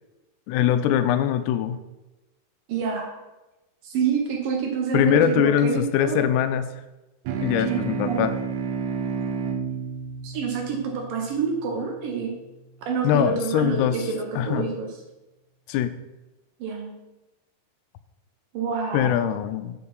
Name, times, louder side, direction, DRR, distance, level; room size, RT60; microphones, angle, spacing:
voice 1, 0.5-1.8 4.9-6.7 7.4-8.4 13.0-14.0 14.4-14.7 15.7-15.9 18.9-19.8, left 9 dB, 90° left, 11 dB, 2.8 m, -22 dB
voice 2, 2.7-3.1 3.8-6.2 7.3-7.4 7.7-7.8 8.1-8.2 10.2-12.3 12.9-14.9 16.6-16.9 18.5-19.2, right 6 dB, 65° right, 2 dB, 2.5 m, -27 dB
sound 1, 7.2-12.1, right 5 dB, 80° right, 3.0 m, -31 dB
7.6 x 6.7 x 5.5 m, 1.0 s
omnidirectional pair, 4.8 m